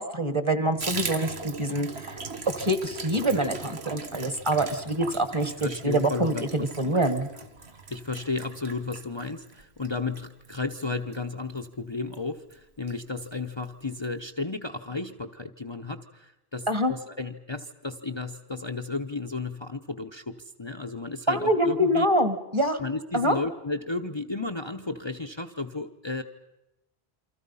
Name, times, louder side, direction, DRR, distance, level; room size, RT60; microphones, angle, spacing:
voice 1, 0.0-2.2 2.5-7.3 16.7-16.9 21.3-22.8 23.1-23.4, right 1 dB, 30° right, 10 dB, 1.6 m, -25 dB
Water tap faucet / Bathtub (filling or washing), 0.8-11.7 12.1-12.2 12.5-12.6 12.9-13.4 13.6-13.7 14.0-14.1, right 4 dB, 90° right, 1.8 m, -39 dB
voice 2, 5.6-7.1 7.4-7.5 7.9-22.1 22.8-26.2, left 3 dB, 30° left, 5 dB, 0.9 m, -33 dB
28.0 x 25.0 x 5.6 m, 0.94 s
omnidirectional pair, 1.0 m